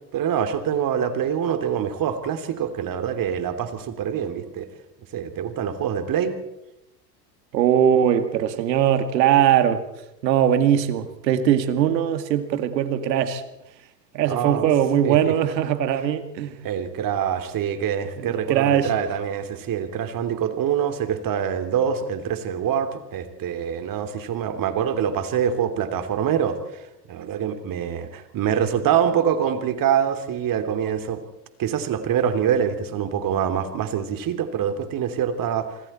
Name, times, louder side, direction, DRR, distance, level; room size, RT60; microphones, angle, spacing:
voice 1, 0.1-4.7 5.1-6.4 14.3-14.6 15.0-15.4 16.6-26.8 27.1-31.2 31.6-35.8, right 8 dB, 40° right, 3.1 m, -25 dB
voice 2, 7.5-9.8 10.2-13.4 14.1-16.6 18.2-18.9, right 10 dB, 80° right, 2.4 m, -20 dB
27.5 x 24.0 x 4.4 m
hypercardioid pair, 95°, 50 cm